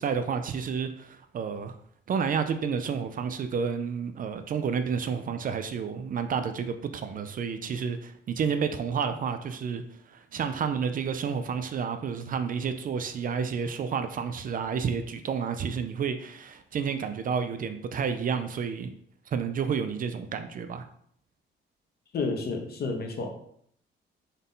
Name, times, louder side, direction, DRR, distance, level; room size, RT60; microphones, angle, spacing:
voice 1, 0.0-1.7 2.1-9.8 10.1-18.9 19.3-20.9, right 6 dB, 45° right, 8 dB, 0.4 m, -30 dB
voice 2, 22.1-23.3, left 3 dB, 50° left, 3 dB, 0.9 m, -30 dB
4.0 x 2.6 x 3.6 m, 0.66 s
cardioid pair, 90°, 20 cm